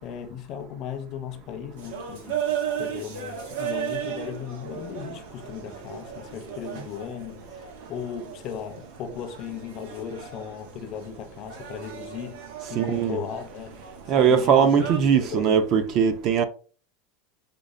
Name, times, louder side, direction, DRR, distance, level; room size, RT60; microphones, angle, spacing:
voice 1, 0.0-7.5 7.9-12.4 12.7-13.8 14.2-15.6, left 8 dB, 35° left, 0.5 m, -37 dB
sound 1, 1.8-15.0, right 8 dB, 80° right, 0.8 m, -36 dB
voice 2, 12.7-13.2 14.1-16.4, right 7 dB, 35° right, 0.3 m, -20 dB
5.1 x 2.0 x 2.4 m
supercardioid pair, 170°, 0 cm